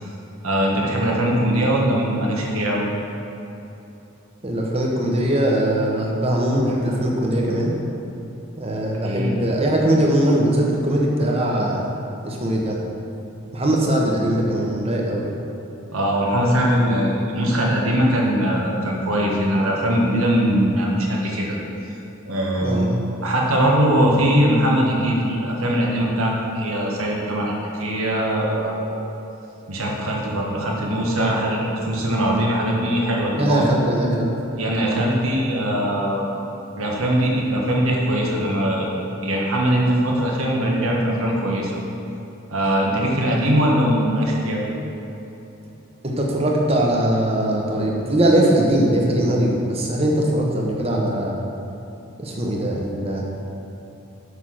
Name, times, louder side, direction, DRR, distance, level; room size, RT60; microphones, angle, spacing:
voice 1, 0.4-2.8 9.0-9.4 15.9-21.6 22.3-22.9 23.2-28.9 29.7-33.7 34.6-36.3 36.8-39.0 39.2-41.7 42.5-44.7, equal, 85° right, -2 dB, 1.5 m, -21 dB
voice 2, 4.4-7.7 8.6-11.8 12.2-12.8 13.5-15.3 22.6-22.9 33.3-34.3 46.0-51.3 52.2-53.2, right 1 dB, 30° right, -2 dB, 1.0 m, -21 dB
6.7 x 5.7 x 6.4 m, 2.9 s
head